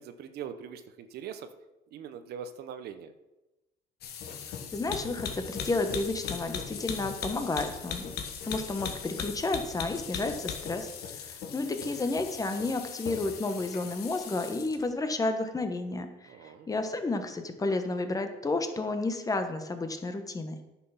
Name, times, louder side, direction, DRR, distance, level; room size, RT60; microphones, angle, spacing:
voice 1, 0.0-1.5 1.9-3.1 11.6-12.0 16.3-16.7, right 8 dB, 70° right, 10 dB, 0.8 m, -42 dB
sound 1, 4.0-14.9, left 7 dB, 70° left, 1.4 m, -39 dB
voice 2, 4.7-8.1 8.4-10.9 11.2-16.3 16.7-20.6, left 2 dB, 20° left, 7 dB, 1.1 m, -31 dB
10.0 x 5.9 x 5.8 m, 1.0 s
cardioid pair, 110°, 17 cm